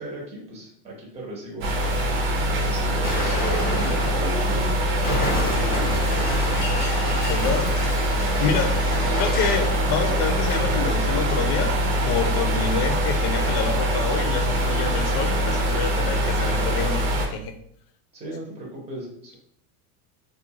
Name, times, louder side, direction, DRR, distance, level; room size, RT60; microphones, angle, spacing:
voice 1, 0.0-1.7 2.6-3.4 3.6-4.7 18.1-19.4, right 1 dB, 15° right, -3 dB, 0.8 m, -36 dB
sound 1, 1.6-17.3, equal, 45° right, 0.7 m, -23 dB
Explosion, 3.0-9.7, left 1 dB, 20° left, 0.8 m, -30 dB
voice 2, 7.3-7.7 8.4-8.8 9.1-11.8 12.0-17.0 17.3-17.5, left 6 dB, 50° left, 6 dB, 0.5 m, -27 dB
2.5 x 2.4 x 2.7 m, 0.66 s
supercardioid pair, 115°, 47 cm